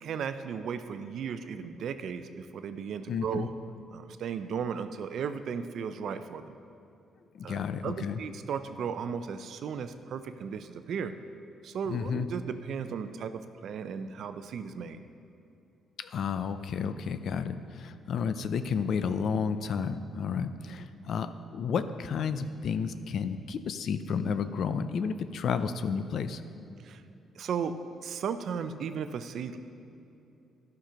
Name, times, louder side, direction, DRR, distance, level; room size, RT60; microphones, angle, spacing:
voice 1, 0.0-3.5 3.9-6.5 7.4-11.1 11.6-15.0 26.8-27.0 27.4-27.7 28.0-29.6, right 7 dB, 65° right, 10 dB, 0.5 m, -35 dB
voice 2, 3.1-3.5 7.3-8.2 11.9-12.3 16.0-26.4, left 6 dB, 65° left, 11 dB, 0.5 m, -31 dB
11.5 x 5.9 x 5.1 m, 2.8 s
cardioid pair, 90°, 0 cm